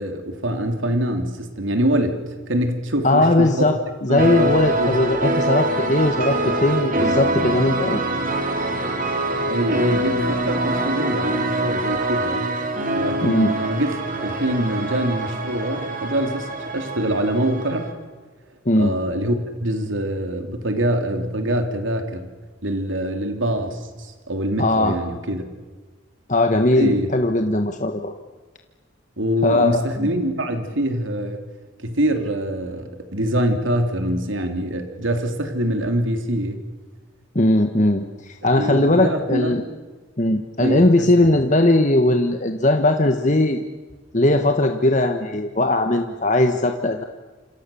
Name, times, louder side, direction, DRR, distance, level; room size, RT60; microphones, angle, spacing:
voice 1, 0.0-2.2 2.5-3.7 4.1-4.5 4.8-5.0 9.4-12.5 13.0-13.9 14.2-17.9 18.8-19.4 19.6-22.3 22.6-25.4 26.7-27.1 29.2-31.4 31.8-36.6 38.4-39.6 40.6-41.1, right 1 dB, 80° right, 6 dB, 3.0 m, -24 dB
voice 2, 3.0-8.0 13.2-13.5 18.6-18.9 24.6-24.9 26.3-28.1 29.4-30.1 37.3-39.6 40.2-43.6 44.1-47.0, left 1 dB, 40° left, 5 dB, 1.4 m, -19 dB
sound 1, 4.2-17.9, right 1 dB, 45° right, 3.9 m, -24 dB
28.5 x 27.0 x 7.0 m, 1.4 s
head